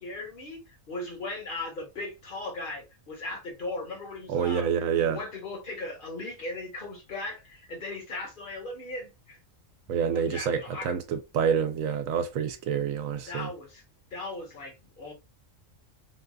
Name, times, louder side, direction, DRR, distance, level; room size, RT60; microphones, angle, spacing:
voice 1, 0.0-4.7 5.0-9.4 10.1-10.9 13.3-13.8 14.1-15.1, left 2 dB, 40° left, 1.3 m, -38 dB
voice 2, 4.3-5.2 9.9-13.5, right 7 dB, 85° right, 1.0 m, -27 dB
4.0 x 2.2 x 2.4 m
omnidirectional pair, 1.4 m